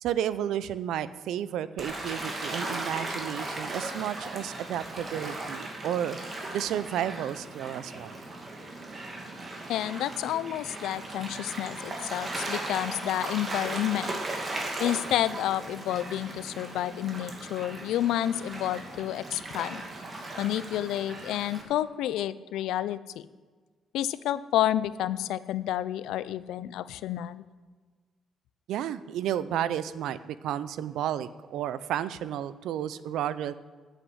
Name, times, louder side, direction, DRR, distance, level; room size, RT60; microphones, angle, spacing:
voice 1, 0.0-6.2 6.5-8.2 28.7-33.5, right 10 dB, 85° right, 15 dB, 0.5 m, -32 dB
Gull seagull / Waves surf, 1.8-21.6, right 2 dB, 35° right, 2.4 m, -37 dB
voice 2, 9.7-14.1 14.8-19.8 20.4-23.3 23.9-27.4, left 12 dB, 85° left, 16 dB, 0.4 m, -30 dB
8.5 x 7.9 x 7.8 m, 1.4 s
cardioid pair, 90°, 0 cm